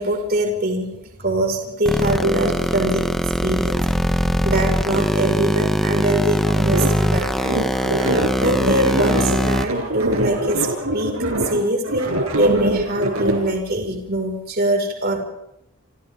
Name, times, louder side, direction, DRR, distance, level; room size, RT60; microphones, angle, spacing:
voice 1, 0.0-3.9 4.4-7.3 8.3-11.2 11.5-15.2, right 1 dB, 45° right, 2 dB, 5.6 m, -23 dB
sound 1, 1.9-9.7, equal, ahead, 1.0 m, -21 dB
sound 2, 6.7-13.4, right 1 dB, 75° right, 5.6 m, -23 dB
28.5 x 27.5 x 3.8 m, 0.82 s
head